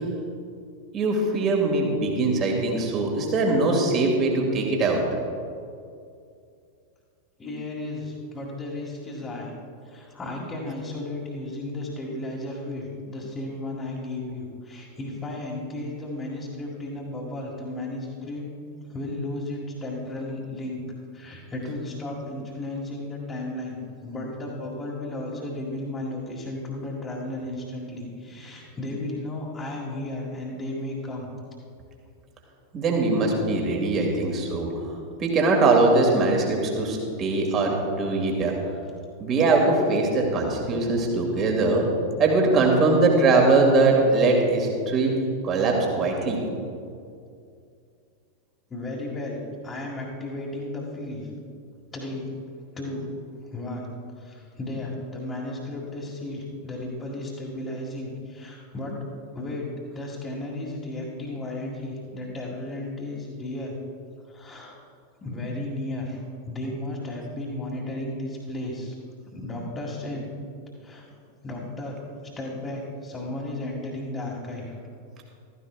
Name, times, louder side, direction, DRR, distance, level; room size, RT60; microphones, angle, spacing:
voice 1, 0.9-5.0 32.7-34.7 35.2-38.5 39.2-41.9 42.2-45.1 45.4-46.4, right 3 dB, 30° right, 1 dB, 2.4 m, -21 dB
voice 2, 7.4-9.5 9.8-18.5 18.8-20.8 21.1-31.3 48.7-51.3 51.9-52.3 52.7-53.1 53.4-53.9 54.2-59.0 59.3-63.8 64.3-64.7 65.2-68.9 69.3-70.3 70.8-71.0 71.4-74.8, left 1 dB, 20° left, -6 dB, 1.9 m, -34 dB
15.0 x 14.0 x 2.5 m, 2.4 s
figure-of-eight pair, 90°, 0 cm